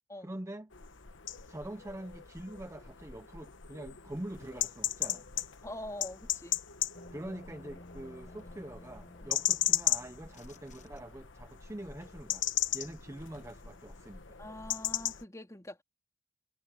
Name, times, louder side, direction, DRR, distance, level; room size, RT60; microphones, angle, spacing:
voice 1, 0.2-0.7 1.5-5.3 7.1-12.5 12.7-14.4, right 1 dB, 15° right, 0.6 m, -44 dB
sound 1, 0.7-15.2, left 12 dB, 65° left, 1.1 m, -36 dB
voice 2, 5.6-6.6 14.4-15.8, left 1 dB, 15° left, 3.0 m, -44 dB
sound 2, 6.9-11.5, left 1 dB, 35° left, 1.0 m, -54 dB
head